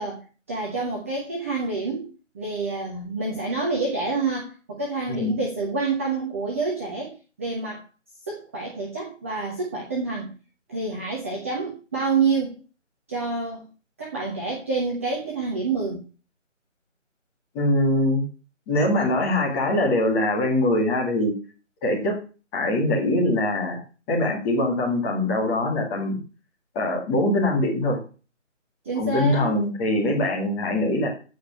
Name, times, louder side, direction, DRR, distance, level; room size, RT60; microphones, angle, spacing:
voice 1, 0.0-2.1 2.3-7.8 8.3-10.3 10.7-12.6 13.1-13.6 14.0-16.0 28.8-29.6, right 4 dB, 10° right, -2 dB, 1.1 m, -28 dB
voice 2, 17.5-18.2 18.7-21.3 21.8-22.2 22.5-23.8 24.1-26.2 26.7-28.0 29.0-31.1, left 1 dB, 10° left, -2 dB, 2.1 m, -23 dB
14.5 x 5.1 x 7.5 m, 0.35 s
figure-of-eight pair, 155°, 38 cm